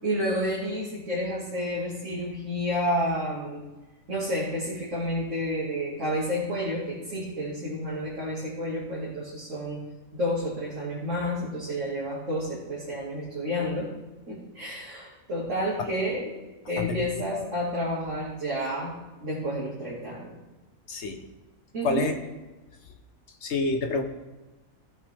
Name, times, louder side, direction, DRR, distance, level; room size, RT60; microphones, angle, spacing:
voice 1, 0.0-3.7 4.1-9.8 10.1-13.9 14.3-16.4 16.7-18.9 19.2-20.4 21.7-22.1, equal, 55° right, -8 dB, 2.8 m, -30 dB
voice 2, 20.9-21.2 21.8-22.1 23.4-24.0, left 3 dB, 50° left, 5 dB, 1.4 m, -28 dB
16.0 x 8.0 x 3.7 m, 1.1 s
omnidirectional pair, 1.5 m